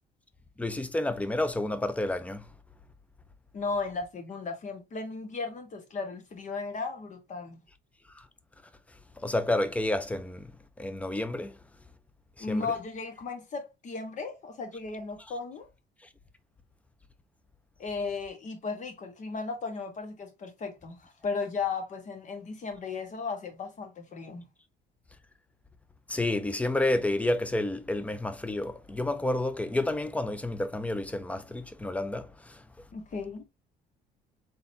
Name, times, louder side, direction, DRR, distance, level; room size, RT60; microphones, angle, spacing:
voice 1, 0.6-2.5 8.1-8.3 8.9-10.5 10.8-11.6 12.4-12.7 26.1-32.9, left 1 dB, 10° left, 0.6 m, -30 dB
voice 2, 3.5-7.6 12.4-15.7 17.8-24.5 32.9-33.4, left 4 dB, 45° left, 1.5 m, -35 dB
3.9 x 3.9 x 2.7 m
cardioid pair, 110°, 17 cm